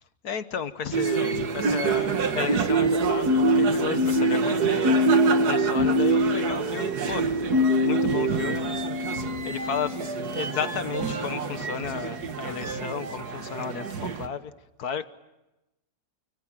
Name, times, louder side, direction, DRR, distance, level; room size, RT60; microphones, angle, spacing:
voice 1, 0.2-5.0 5.4-7.3 7.8-8.7 9.4-9.9 10.3-14.5 14.8-15.1, left 7 dB, 60° left, 1.6 m, -33 dB
sound 1, 0.9-14.3, right 2 dB, 65° right, 2.0 m, -24 dB
28.5 x 26.0 x 7.6 m
omnidirectional pair, 1.9 m